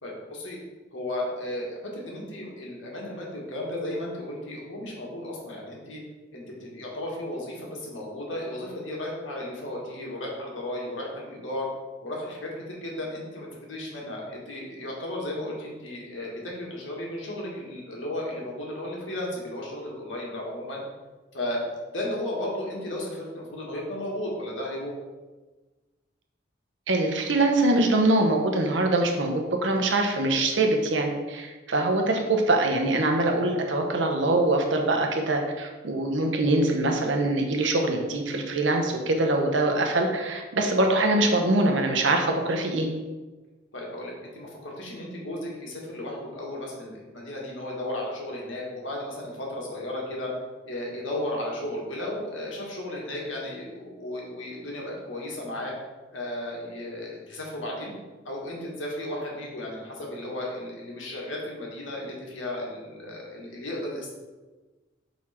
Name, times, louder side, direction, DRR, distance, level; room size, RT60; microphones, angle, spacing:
voice 1, 0.0-0.6 0.9-6.0 6.3-11.7 12.0-20.8 21.3-24.9 43.7-50.3 50.6-55.7 56.1-57.9 58.2-64.1, left 1 dB, 90° left, -2 dB, 1.7 m, -34 dB
voice 2, 26.9-42.9, right 2 dB, 75° right, 2 dB, 0.8 m, -23 dB
6.2 x 4.1 x 4.3 m, 1.3 s
head